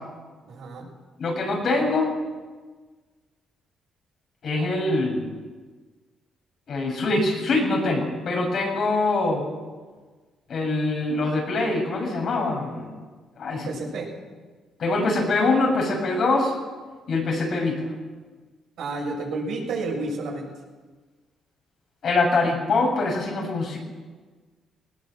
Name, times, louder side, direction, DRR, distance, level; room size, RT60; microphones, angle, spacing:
voice 1, 0.4-0.9 13.6-14.1 18.8-20.5, right 3 dB, 75° right, -3 dB, 7.4 m, -30 dB
voice 2, 1.2-2.1 4.4-5.3 6.7-9.5 10.5-12.9 13.4-13.7 14.8-16.5 17.1-17.9 22.0-23.8, left 2 dB, 60° left, 1 dB, 6.9 m, -24 dB
19.5 x 18.5 x 7.8 m, 1.4 s
cardioid pair, 90°, 0 cm